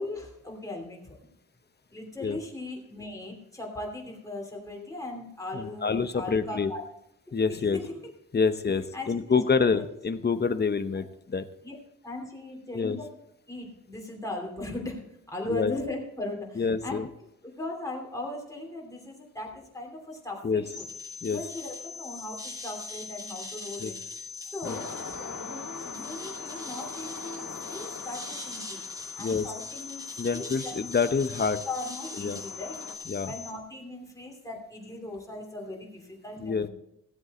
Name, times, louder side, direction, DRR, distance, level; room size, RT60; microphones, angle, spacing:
voice 1, 0.0-1.3 1.9-6.8 7.5-8.0 8.3-8.4 8.9-9.3 9.6-9.8 11.6-11.7 12.0-13.1 13.5-15.0 15.3-17.0 17.4-20.8 21.3-24.0 24.4-28.8 29.2-30.7 31.6-32.8 33.2-36.7, left 2 dB, 10° left, 0 dB, 2.9 m, -38 dB
voice 2, 5.5-6.7 7.3-7.8 8.3-11.4 12.7-13.0 15.5-15.8 16.6-17.1 20.4-20.6 21.2-21.4 23.8-23.9 24.6-24.8 29.2-29.5 30.2-31.6 32.2-32.4 33.1-33.3 36.4-36.7, left 5 dB, 30° left, 10 dB, 0.7 m, -27 dB
sound 1, 20.7-33.5, left 4 dB, 10° right, 3.9 m, -40 dB
sound 2, 24.6-32.9, left 4 dB, 65° left, 1.9 m, -44 dB
16.0 x 8.0 x 4.2 m, 0.79 s
wide cardioid pair, 135°, 33 cm